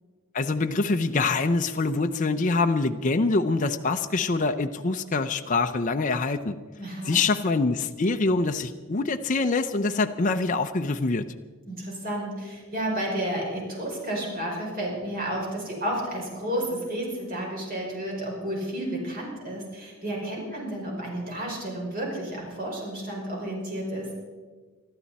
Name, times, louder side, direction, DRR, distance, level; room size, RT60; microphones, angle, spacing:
voice 1, 0.3-6.6 7.1-11.3, left 3 dB, 35° left, 6 dB, 0.5 m, -25 dB
voice 2, 6.8-7.2 11.7-24.1, right 1 dB, 40° right, -2 dB, 5.0 m, -31 dB
24.5 x 12.5 x 4.2 m, 1.4 s
head